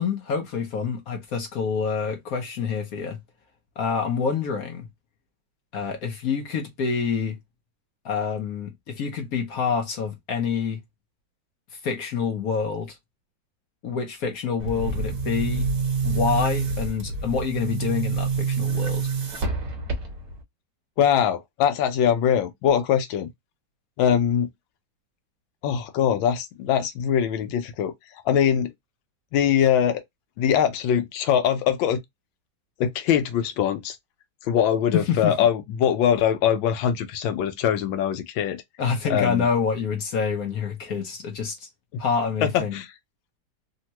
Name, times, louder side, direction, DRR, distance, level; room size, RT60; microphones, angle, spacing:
voice 1, 0.0-3.2 3.8-4.9 5.7-7.4 8.0-10.8 11.8-12.9 13.8-15.7 16.0-19.1 34.9-35.5 38.8-41.7 42.0-42.8, left 6 dB, 60° left, 1.0 m, -27 dB
Boom, 14.6-20.4, right 5 dB, 55° right, 1.2 m, -27 dB
voice 2, 21.0-23.3 24.0-24.5 25.6-27.9 28.3-28.7 29.3-30.0 30.4-32.0 32.8-34.0 34.5-38.6 39.1-39.5 42.4-42.9, left 9 dB, 85° left, 1.4 m, -22 dB
3.5 x 2.1 x 2.8 m
omnidirectional pair, 2.1 m